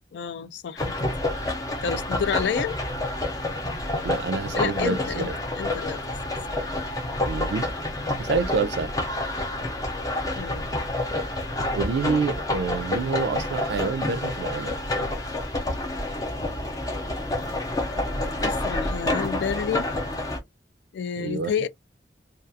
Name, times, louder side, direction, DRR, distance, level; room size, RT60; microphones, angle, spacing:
voice 1, 0.1-1.1 1.8-2.8 4.6-5.3 5.6-6.1 6.5-6.7 10.3-10.7 18.4-19.9 20.9-21.7, left 7 dB, 80° left, 0.3 m, -29 dB
sound 1, 0.8-20.4, left 1 dB, 20° left, 0.6 m, -28 dB
voice 2, 4.0-5.4 7.3-7.7 8.2-8.9 11.7-14.8 21.2-21.5, right 4 dB, 70° right, 0.4 m, -27 dB
2.3 x 2.3 x 2.6 m
head